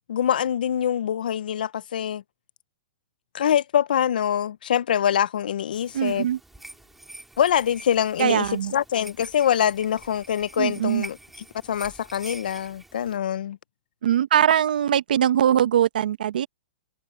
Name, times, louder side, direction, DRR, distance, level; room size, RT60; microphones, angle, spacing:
voice 1, 0.1-2.2 3.3-6.3 7.4-11.2 11.7-13.6, left 9 dB, 80° left, 0.6 m, -24 dB
sound 1, 5.7-13.2, right 2 dB, 5° right, 4.7 m, -45 dB
voice 2, 5.9-6.4 8.2-8.7 10.6-11.0 14.0-16.5, right 10 dB, 80° right, 1.5 m, -21 dB
hypercardioid pair, 160°, 5 cm